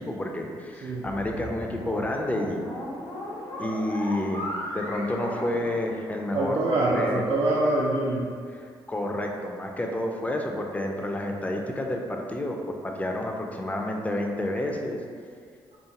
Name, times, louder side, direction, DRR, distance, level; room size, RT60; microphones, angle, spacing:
voice 1, 0.0-2.7 3.6-4.5 4.7-6.6 6.9-7.2 8.5-15.0, left 1 dB, 10° left, 2 dB, 0.4 m, -30 dB
sound 1, 1.0-6.5, left 1 dB, 80° left, 0.6 m, -37 dB
voice 2, 6.3-8.3, right 2 dB, 55° right, -5 dB, 0.4 m, -24 dB
2.4 x 2.3 x 2.8 m, 2.1 s
hypercardioid pair, 40°, 12 cm